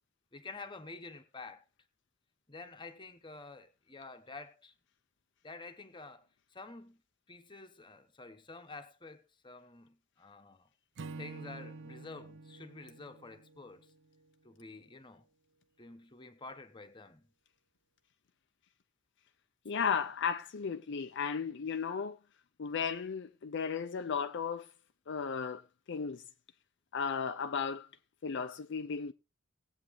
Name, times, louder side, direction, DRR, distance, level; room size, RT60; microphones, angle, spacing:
voice 1, 0.3-1.6 2.5-4.7 5.4-6.3 6.5-7.0 7.3-10.7 11.2-13.9 14.4-15.3 15.8-17.3, left 3 dB, 25° left, 1.1 m, -49 dB
Acoustic guitar / Strum, 11.0-14.3, right 3 dB, 60° right, 0.5 m, -48 dB
voice 2, 19.7-22.2 22.6-24.7 25.1-25.6 25.9-26.2 26.9-27.9 28.2-29.1, left 6 dB, 60° left, 0.5 m, -35 dB
19.0 x 8.1 x 3.1 m
head